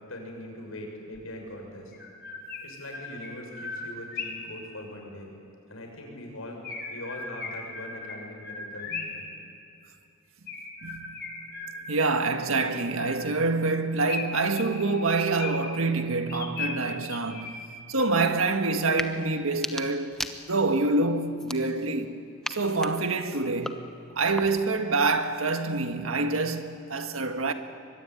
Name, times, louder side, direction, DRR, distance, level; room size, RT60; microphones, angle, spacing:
voice 1, 0.1-1.9 2.6-5.3 5.7-6.6 6.9-9.3, left 1 dB, 85° left, 6.8 m, -41 dB
Chirp tweet, 1.1-1.2 1.9-4.5 6.6-9.3 10.5-12.0 12.6-13.5 14.1-15.8 16.3-17.8, left 4 dB, 50° left, 4.1 m, -38 dB
voice 2, 10.8-11.3 11.9-17.6 17.9-22.2 22.5-23.9 24.2-27.5, right 3 dB, 80° right, 1.7 m, -26 dB
sound 1, 18.9-19.1 19.5-20.8 21.4-22.0 22.4-24.8, left 1 dB, 5° left, 1.0 m, -38 dB
24.0 x 22.5 x 9.7 m
head